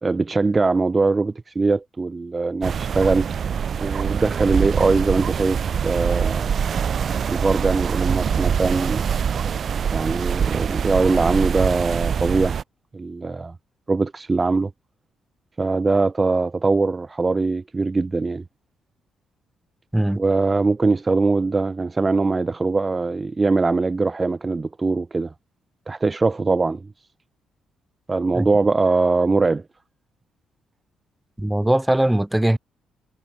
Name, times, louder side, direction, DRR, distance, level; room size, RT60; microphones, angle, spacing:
voice 1, 0.0-3.3 3.8-6.5 7.3-9.0 9.9-12.6 12.9-13.5 13.9-14.7 15.6-18.4 20.1-25.3 25.9-26.8 28.1-29.6, right 3 dB, 25° right, 1.4 m, -21 dB
sound 1, 2.6-12.6, right 7 dB, 50° right, 3.4 m, -24 dB
voice 2, 31.4-32.6, right 1 dB, 5° right, 2.0 m, -20 dB
cardioid pair, 90°, 0 cm